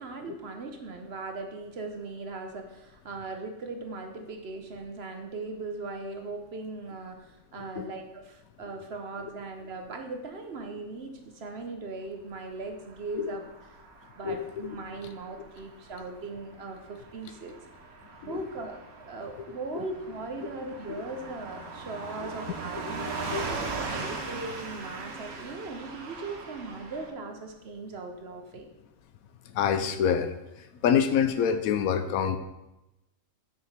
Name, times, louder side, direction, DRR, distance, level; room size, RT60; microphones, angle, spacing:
voice 1, 0.0-13.4 14.2-17.5 18.1-23.5 23.9-28.7, right 3 dB, 55° right, 4 dB, 0.9 m, -39 dB
Car passing by / Truck, 12.8-27.1, right 4 dB, 90° right, 1.4 m, -40 dB
voice 2, 23.0-23.4 29.5-30.3 30.8-32.4, left 8 dB, 85° left, 9 dB, 1.1 m, -26 dB
6.4 x 4.8 x 4.8 m, 0.94 s
omnidirectional pair, 1.5 m